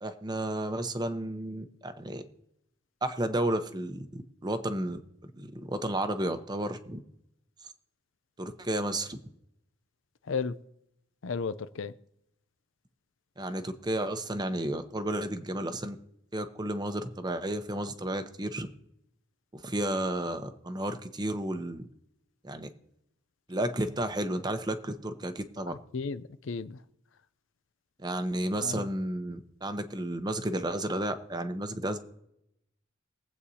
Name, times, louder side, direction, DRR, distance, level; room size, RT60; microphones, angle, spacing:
voice 1, 0.0-2.2 3.0-7.0 8.4-9.2 13.4-16.0 16.3-18.7 19.5-21.9 22.4-22.7 23.5-25.7 28.0-32.0, right 1 dB, 20° right, 0.8 m, -32 dB
voice 2, 11.2-11.9 25.7-26.8 28.6-28.8, left 5 dB, 70° left, 0.5 m, -34 dB
22.0 x 8.3 x 2.8 m
head